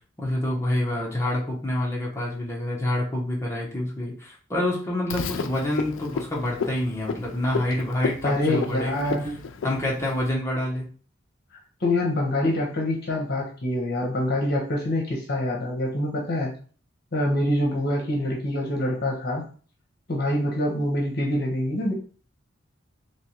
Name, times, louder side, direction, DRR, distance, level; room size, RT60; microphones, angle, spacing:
voice 1, 0.2-9.1 9.6-10.9, left 1 dB, 15° left, -4 dB, 0.9 m, -27 dB
Frog, 5.1-10.3, left 5 dB, 75° left, 0.4 m, -33 dB
voice 2, 8.2-9.4 11.8-16.5 17.1-19.4 20.1-21.9, left 1 dB, 50° left, -1 dB, 0.9 m, -25 dB
3.3 x 3.1 x 2.9 m, 0.41 s
head